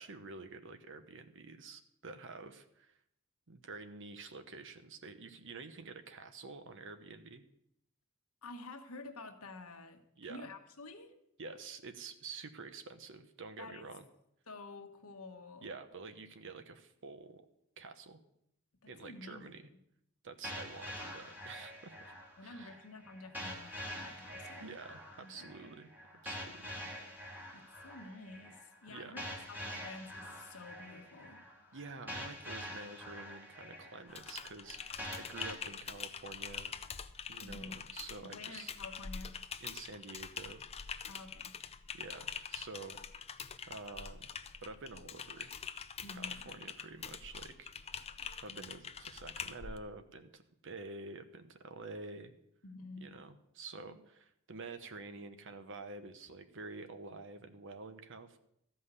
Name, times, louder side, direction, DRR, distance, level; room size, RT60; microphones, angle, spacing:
voice 1, 0.0-3.0 3.5-7.4 10.2-10.5 11.4-14.1 15.6-17.5 17.8-18.2 18.9-19.6 20.2-22.1 22.4-22.8 24.6-25.9 26.2-26.8 28.9-29.1 31.7-36.7 37.3-38.7 39.6-40.6 41.9-43.0 43.7-44.3 44.6-45.5 46.1-47.7 48.4-52.3 53.0-58.4, right 3 dB, 60° right, 9 dB, 1.0 m, -48 dB
voice 2, 8.4-10.0 10.3-11.1 13.6-13.9 14.5-15.7 18.8-19.6 22.4-24.7 25.2-25.7 27.5-31.4 37.4-37.8 38.3-39.3 41.1-41.5 46.0-46.5 48.5-48.6 52.6-53.1 53.8-54.0, left 3 dB, 80° left, 5 dB, 1.4 m, -50 dB
sound 1, 20.4-35.5, left 1 dB, 10° right, 2.6 m, -46 dB
Typing, 34.1-49.8, left 6 dB, 30° left, 0.5 m, -45 dB
13.5 x 5.6 x 8.2 m, 0.77 s
head